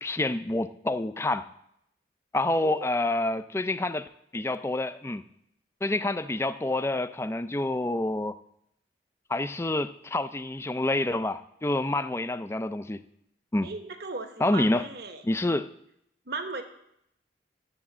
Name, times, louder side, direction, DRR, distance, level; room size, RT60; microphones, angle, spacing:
voice 1, 0.0-1.5 2.3-5.2 5.8-8.4 9.3-13.0 13.5-13.7 14.4-14.8 15.2-15.7, left 2 dB, 15° left, 11 dB, 0.4 m, -28 dB
voice 2, 13.6-15.2 16.3-16.6, right 3 dB, 60° right, 7 dB, 1.1 m, -36 dB
11.0 x 7.7 x 7.2 m, 0.75 s
head